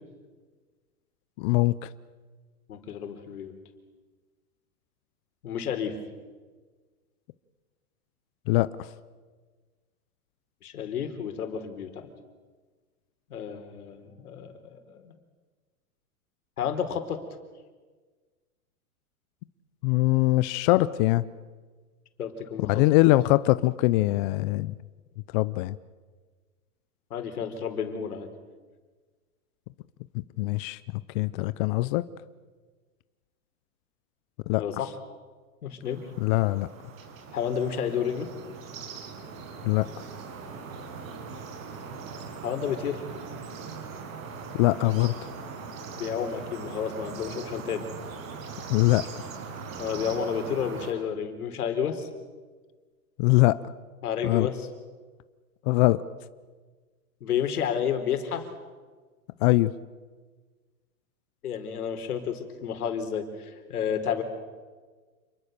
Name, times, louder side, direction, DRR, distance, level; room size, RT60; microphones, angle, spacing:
voice 1, 1.4-1.9 8.5-8.7 19.8-21.2 22.6-24.7 25.3-25.8 30.1-30.8 31.1-32.0 34.5-34.6 36.2-36.7 39.6-39.9 44.5-45.1 48.7-49.0 53.2-53.6 54.2-54.5 55.7-56.0 59.4-59.7, left 19 dB, 35° left, 15 dB, 0.6 m, -22 dB
voice 2, 2.7-3.5 5.4-5.9 10.6-12.1 13.3-15.1 16.6-17.2 22.2-22.8 27.1-28.3 34.6-34.9 35.6-36.0 37.3-38.3 42.4-43.0 46.0-47.9 49.8-52.1 54.0-54.7 57.2-58.5 61.4-64.2, left 8 dB, 80° left, 7 dB, 4.1 m, -31 dB
sound 1, 35.8-50.9, right 5 dB, 65° right, 6.3 m, -40 dB
28.5 x 22.0 x 6.7 m, 1.4 s
hypercardioid pair, 140°, 44 cm